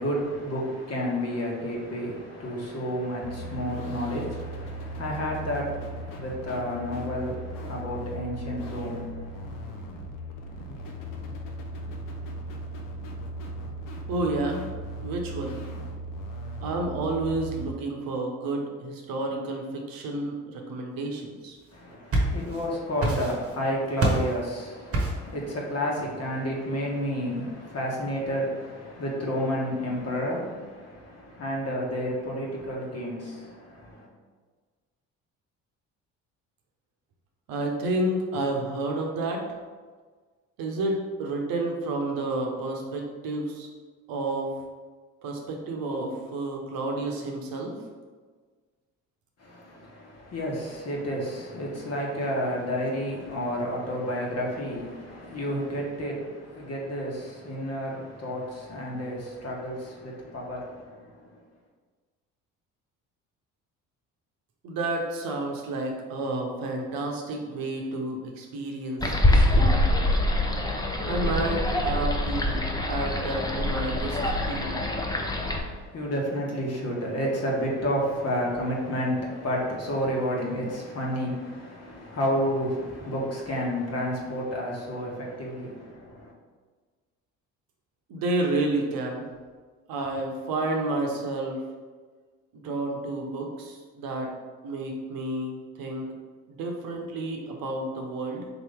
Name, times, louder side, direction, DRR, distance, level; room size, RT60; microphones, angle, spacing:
voice 1, 0.0-9.5 21.7-34.1 49.4-61.3 75.3-86.3, equal, 40° left, -2 dB, 1.3 m, -31 dB
sound 1, 3.2-17.7, right 1 dB, 60° left, 0.8 m, -37 dB
voice 2, 14.1-14.6 15.0-15.6 16.6-21.6 37.5-39.4 40.6-43.7 44.1-44.5 45.2-47.7 64.6-69.8 71.0-74.2 74.5-74.7 88.1-89.2 89.9-91.6 92.5-94.3 94.6-96.1 96.5-98.5, right 2 dB, 65° right, 1 dB, 0.9 m, -30 dB
sound 2, 21.7-22.7 23.0-23.6 24.0-24.4 24.9-25.3, right 1 dB, 40° right, 1.1 m, -26 dB
sound 3, 69.0-75.6, left 1 dB, 10° left, 0.6 m, -24 dB
3.9 x 3.0 x 3.5 m, 1.4 s
hypercardioid pair, 60°, 37 cm